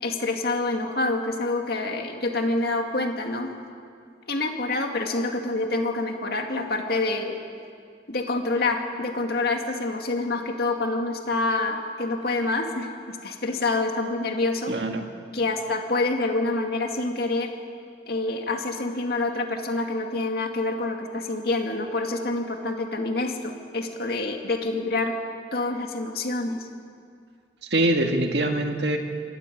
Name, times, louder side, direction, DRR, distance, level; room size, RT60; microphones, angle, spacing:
voice 1, 0.0-3.5 4.3-7.4 8.1-14.7 15.3-17.5 18.1-25.1 25.5-26.7, left 2 dB, 60° left, 3 dB, 2.2 m, -27 dB
voice 2, 14.7-15.1 27.7-29.0, right 1 dB, 70° right, 4 dB, 1.9 m, -23 dB
24.0 x 13.5 x 9.3 m, 2.2 s
head